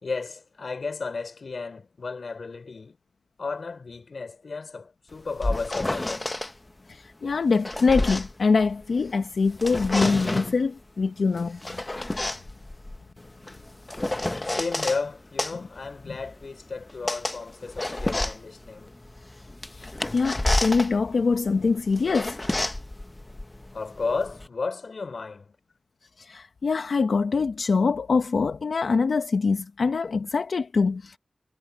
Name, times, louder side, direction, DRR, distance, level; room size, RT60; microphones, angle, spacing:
voice 1, 0.0-3.0 3.4-6.3 14.4-18.9 23.7-25.5, left 4 dB, 65° left, 4.2 m, -33 dB
sound 1, 5.1-6.5 7.3-9.1 9.5-10.6 11.4-15.0 15.4-24.5, left 1 dB, 20° left, 0.8 m, -30 dB
voice 2, 6.9-11.8 16.1-16.2 19.7-22.4 26.2-31.2, left 4 dB, 85° left, 0.9 m, -24 dB
wide cardioid pair, 105°, 0 cm